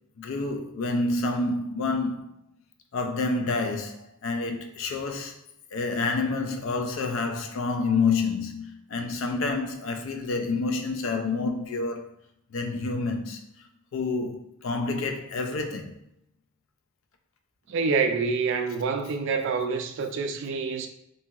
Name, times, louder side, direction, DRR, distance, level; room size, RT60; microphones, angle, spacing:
voice 1, 0.2-2.3 2.9-5.4 5.7-12.1 12.5-13.4 13.9-16.0, left 3 dB, 70° left, 0.4 m, -28 dB
voice 2, 17.7-20.9, right 5 dB, 60° right, 0.3 m, -27 dB
2.7 x 2.3 x 2.8 m
head